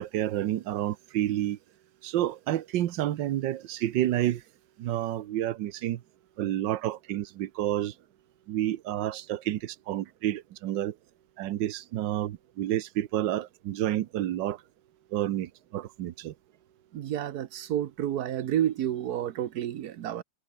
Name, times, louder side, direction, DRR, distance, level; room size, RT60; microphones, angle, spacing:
voice 1, 0.0-1.6 2.0-4.4 4.8-6.0 6.4-7.9 8.5-10.9 11.4-14.6 15.1-16.3, right 13 dB, 85° right, 1.5 m, -29 dB
voice 2, 16.9-20.2, right 11 dB, 65° right, 1.3 m, -30 dB
omnidirectional pair, 2.0 m